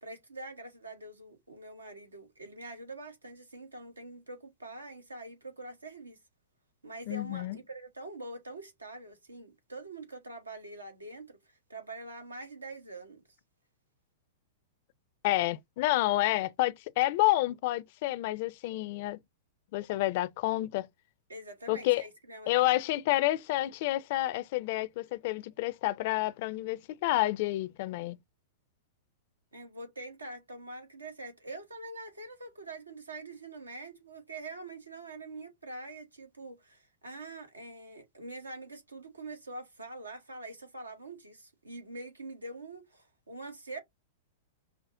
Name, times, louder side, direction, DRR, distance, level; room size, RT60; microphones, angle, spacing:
voice 1, 0.0-6.2 6.8-13.2 21.3-22.7 29.5-43.8, right 2 dB, 85° right, 1.0 m, -44 dB
voice 2, 7.1-7.6 15.2-19.2 19.7-20.9 21.7-22.0 22.5-28.2, left 17 dB, 50° left, 0.4 m, -29 dB
5.6 x 2.0 x 2.5 m
figure-of-eight pair, 100°, 0 cm